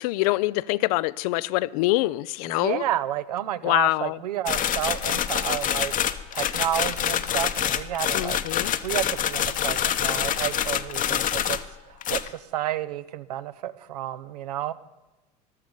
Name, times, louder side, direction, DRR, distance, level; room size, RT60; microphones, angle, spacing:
voice 1, 0.0-2.8 3.6-4.2 8.1-8.7, left 19 dB, 65° left, 20 dB, 0.5 m, -25 dB
voice 2, 2.5-5.9 6.3-8.4 8.8-11.6 12.1-14.7, right 12 dB, 80° right, 13 dB, 0.7 m, -30 dB
sound 1, 4.5-11.7 12.0-12.3, left 10 dB, 40° left, 0.9 m, -26 dB
14.0 x 12.5 x 5.2 m, 1.1 s
hypercardioid pair, 75°, 21 cm